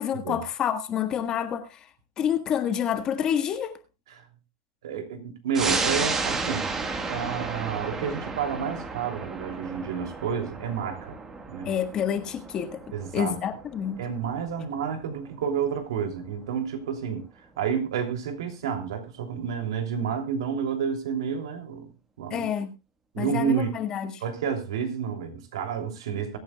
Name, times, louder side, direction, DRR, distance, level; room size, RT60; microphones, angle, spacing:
voice 1, 0.0-1.9 2.2-3.8 11.6-12.8 13.1-14.0 22.3-22.7 23.2-24.2, left 9 dB, 30° left, 1.6 m, -28 dB
voice 2, 4.8-6.7 7.1-11.2 11.5-11.7 12.9-13.3 14.0-17.2 17.6-21.9 22.2-22.5 23.1-23.7 24.2-26.4, right 7 dB, 80° right, 3.0 m, -30 dB
sound 1, 5.5-16.5 16.9-17.0, right 4 dB, 15° right, 1.6 m, -33 dB
22.5 x 8.8 x 2.3 m
supercardioid pair, 145°, 3 cm